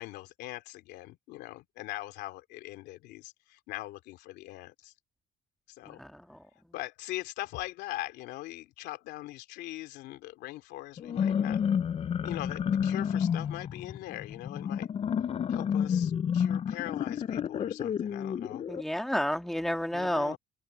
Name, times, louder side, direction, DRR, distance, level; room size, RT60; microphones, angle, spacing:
voice 1, 0.0-4.9 5.8-6.0 6.7-11.6 12.2-14.9 15.5-18.6 19.9-20.4, left 17 dB, 90° left, 2.8 m, -41 dB
voice 2, 5.9-6.4 18.7-20.4, equal, ahead, 2.2 m, -31 dB
sound 1, 11.0-18.8, left 8 dB, 35° left, 0.5 m, -30 dB
open air
cardioid pair, 110°, 17 cm